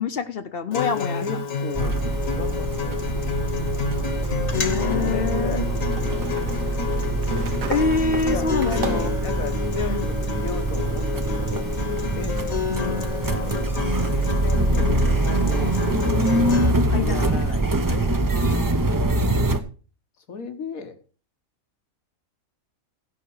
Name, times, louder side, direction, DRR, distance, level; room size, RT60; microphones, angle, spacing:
voice 1, 0.0-1.3 4.5-5.6 7.7-9.1 9.9-10.1 12.7-13.0 14.5-14.8 16.8-17.4 18.3-19.0, left 5 dB, 50° left, 10 dB, 0.9 m, -27 dB
Acoustic guitar, 0.7-16.7, left 5 dB, 70° left, 1.8 m, -29 dB
voice 2, 0.9-2.0 2.2-3.6 4.9-7.0 8.3-11.7 12.0-13.6 14.1-15.8 16.8-19.1 19.5-19.6 20.2-21.0, left 5 dB, 85° left, 8 dB, 1.7 m, -36 dB
sound 1, 1.7-19.6, right 2 dB, 25° right, 0.5 m, -24 dB
sound 2, 3.9-4.0 5.9-9.3, right 5 dB, 80° right, 1.4 m, -34 dB
16.0 x 5.8 x 4.8 m, 0.36 s
omnidirectional pair, 1.4 m